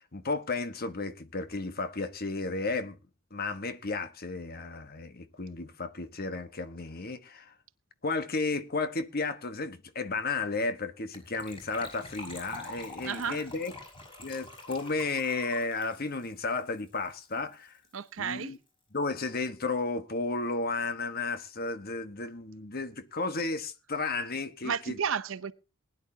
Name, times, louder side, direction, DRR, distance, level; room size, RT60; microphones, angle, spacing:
voice 1, 0.0-3.0 3.3-7.5 8.0-13.7 14.2-17.8 18.2-18.6 18.9-25.0, left 3 dB, 50° left, 1.3 m, -33 dB
Gurgling / Trickle dribble / Fill (with liquid), 11.1-17.4 17.6-17.7 17.9-18.1 18.4-18.5, left 1 dB, 25° left, 5.9 m, -46 dB
voice 2, 13.0-13.4 17.9-18.5 24.6-25.5, right 6 dB, 70° right, 0.7 m, -32 dB
20.0 x 11.0 x 2.8 m
head